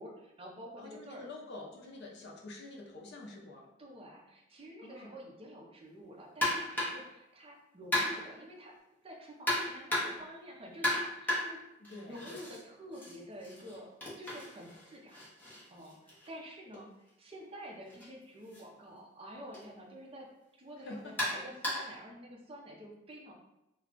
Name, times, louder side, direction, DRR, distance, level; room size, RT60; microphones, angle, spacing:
voice 1, 0.0-1.3 3.8-8.7 9.0-11.6 12.1-13.9 14.2-15.2 15.7-16.9 17.2-20.3 20.6-23.3, equal, 30° right, -1 dB, 0.5 m, -49 dB
voice 2, 0.8-3.7 4.8-5.1 11.8-12.4 20.8-21.1, left 2 dB, 60° left, -1 dB, 0.6 m, -47 dB
sound 1, 6.4-7.1 7.9-8.4 9.5-10.3 10.8-12.6 12.9-16.8 17.9-18.0 18.5-18.6 19.5-19.7 21.2-22.0, left 1 dB, 10° left, 0.8 m, -35 dB
2.3 x 2.2 x 3.6 m, 0.86 s
head